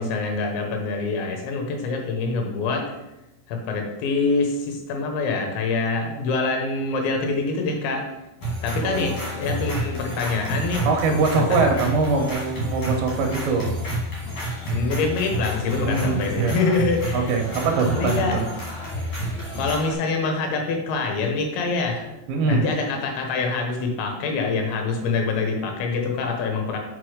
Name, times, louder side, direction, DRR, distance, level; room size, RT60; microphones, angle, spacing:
voice 1, 0.0-2.9 3.5-8.0 8.6-10.8 11.3-11.6 14.7-17.3 17.9-18.4 19.6-22.2 22.5-26.8, left 4 dB, 80° left, 2 dB, 3.4 m, -25 dB
sound 1, 8.4-19.9, right 1 dB, 45° left, 2.7 m, -29 dB
voice 2, 8.8-9.1 10.8-13.7 15.8-16.6 17.1-18.4 22.3-22.6, right 4 dB, 75° right, 1 dB, 2.3 m, -23 dB
6.3 x 5.3 x 4.9 m, 0.95 s
omnidirectional pair, 5.2 m